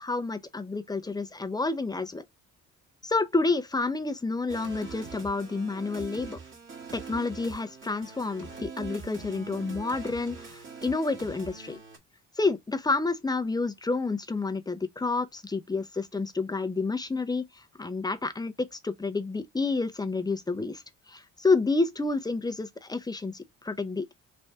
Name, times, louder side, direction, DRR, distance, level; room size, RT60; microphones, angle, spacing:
voice 1, 0.0-2.3 3.0-6.4 6.9-11.8 12.4-24.1, left 3 dB, 15° left, 0.6 m, -29 dB
sound 1, 4.5-12.0, right 5 dB, 40° right, 1.7 m, -43 dB
3.3 x 2.5 x 4.5 m
cardioid pair, 90°, 30 cm